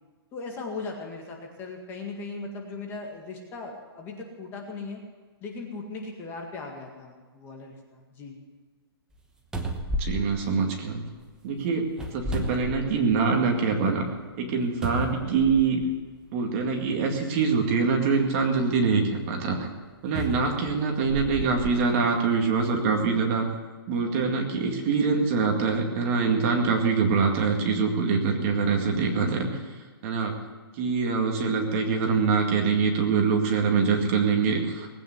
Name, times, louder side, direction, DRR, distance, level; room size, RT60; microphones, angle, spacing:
voice 1, 0.3-5.0 5.4-8.4, left 3 dB, 15° left, 1 dB, 1.9 m, -38 dB
sound 1, 9.1-9.2 9.5-11.2 11.9-13.3 13.8-13.9 14.8-15.9 16.9-17.0 20.1-21.8 22.5-22.6, right 1 dB, 5° right, 1.0 m, -33 dB
voice 2, 10.0-11.0 11.4-11.9 12.1-14.0 14.4-15.8 16.3-19.7 20.0-23.4 23.9-29.6 30.0-30.4 30.8-34.9, right 5 dB, 30° right, 2 dB, 2.2 m, -24 dB
19.5 x 9.1 x 8.0 m, 1.4 s
hypercardioid pair, 165°, 13 cm